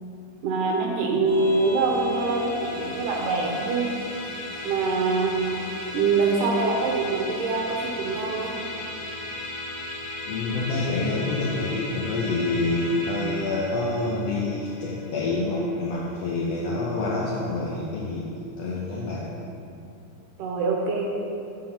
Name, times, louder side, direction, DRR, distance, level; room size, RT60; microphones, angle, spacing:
voice 1, 0.4-3.9 4.6-5.4 5.9-8.5 20.4-21.0, right 3 dB, 80° right, -1 dB, 2.4 m, -24 dB
Musical instrument, 1.2-16.8, left 1 dB, 25° left, 1.5 m, -36 dB
voice 2, 10.3-18.3 18.6-19.3, left 2 dB, 80° left, -4 dB, 1.4 m, -27 dB
7.0 x 5.8 x 5.7 m, 2.8 s
omnidirectional pair, 3.8 m